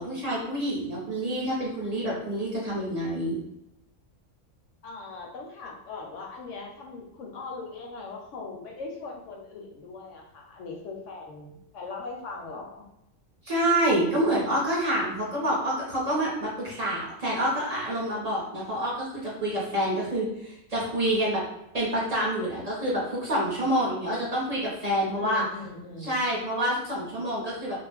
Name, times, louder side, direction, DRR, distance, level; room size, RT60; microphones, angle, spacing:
voice 1, 0.0-3.4 13.4-21.4 21.7-25.4 26.0-27.8, right 1 dB, 40° right, -5 dB, 0.5 m, -27 dB
voice 2, 4.8-12.9 25.2-26.2, left 3 dB, 70° left, 0 dB, 0.9 m, -40 dB
2.4 x 2.0 x 3.3 m, 0.87 s
omnidirectional pair, 1.4 m